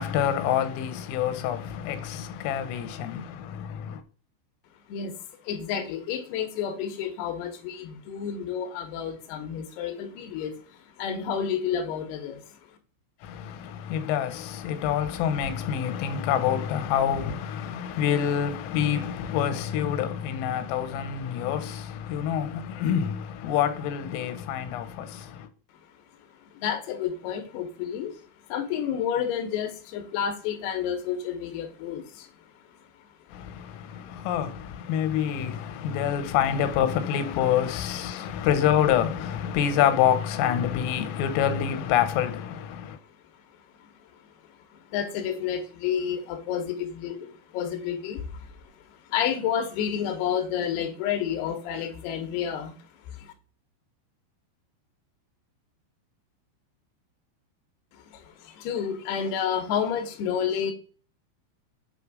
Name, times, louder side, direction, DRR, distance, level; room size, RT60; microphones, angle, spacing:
voice 1, 0.0-4.0 13.2-25.5 33.3-43.0, left 9 dB, 90° left, 3.3 m, -27 dB
voice 2, 5.4-12.6 26.5-28.2 28.5-32.3 34.1-34.2 35.9-36.0 37.4-37.6 38.1-38.4 43.8-43.9 44.7-48.5 49.1-52.8 53.1-53.3 57.9-60.7, left 8 dB, 70° left, 2.7 m, -30 dB
7.8 x 3.4 x 4.8 m
omnidirectional pair, 5.8 m